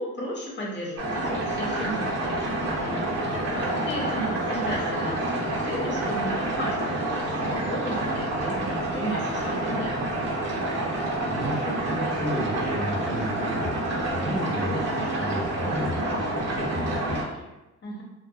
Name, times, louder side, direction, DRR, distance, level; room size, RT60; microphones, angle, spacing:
voice 1, 0.0-2.1 2.4-10.1 17.8-18.0, equal, 35° left, -4 dB, 0.9 m, -34 dB
sound 1, 1.0-17.2, right 1 dB, 55° right, 1.1 m, -28 dB
voice 2, 11.3-17.3, equal, ahead, -7 dB, 1.0 m, -32 dB
2.5 x 2.3 x 2.4 m, 1.0 s
cardioid pair, 90°, 30 cm